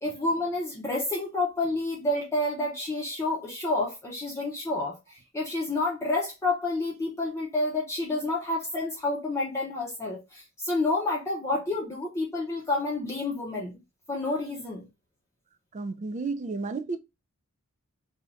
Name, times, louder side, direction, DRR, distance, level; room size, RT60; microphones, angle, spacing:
voice 1, 0.0-13.8 14.1-14.9, left 2 dB, 15° left, 0.7 m, -29 dB
voice 2, 15.7-17.0, right 3 dB, 35° right, 0.3 m, -32 dB
2.7 x 2.4 x 4.2 m
head